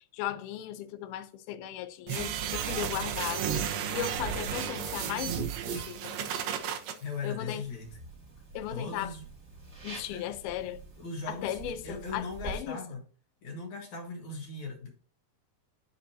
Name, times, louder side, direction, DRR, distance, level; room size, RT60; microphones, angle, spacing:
voice 1, 0.0-6.2 7.2-7.6 8.5-9.1 9.8-10.8 11.3-12.8, left 11 dB, 75° left, 2.5 m, -37 dB
sound 1, 2.1-6.9, right 8 dB, 75° right, 2.9 m, -33 dB
voice 2, 7.0-8.0 8.7-9.2 10.1-10.3 11.0-13.0 13.4-14.9, left 4 dB, 55° left, 2.5 m, -39 dB
sound 2, 7.6-12.6, right 3 dB, 25° right, 2.0 m, -46 dB
11.0 x 4.9 x 2.8 m
omnidirectional pair, 4.8 m